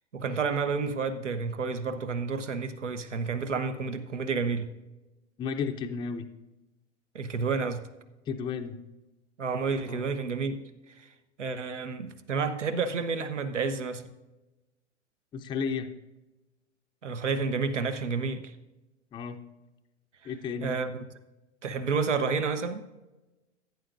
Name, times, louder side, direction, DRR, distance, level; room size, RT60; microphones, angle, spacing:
voice 1, 0.1-4.7 7.1-7.8 9.4-10.6 11.0-11.1 11.4-14.0 17.0-18.4 20.6-20.9 21.6-22.8, right 5 dB, 85° right, 10 dB, 1.0 m, -30 dB
voice 2, 5.4-6.3 8.3-8.8 9.9-10.1 15.3-15.9 19.1-19.4 20.2-20.8, left 6 dB, 15° left, 5 dB, 0.5 m, -33 dB
16.0 x 9.2 x 2.5 m, 1.0 s
hypercardioid pair, 105°, 35 cm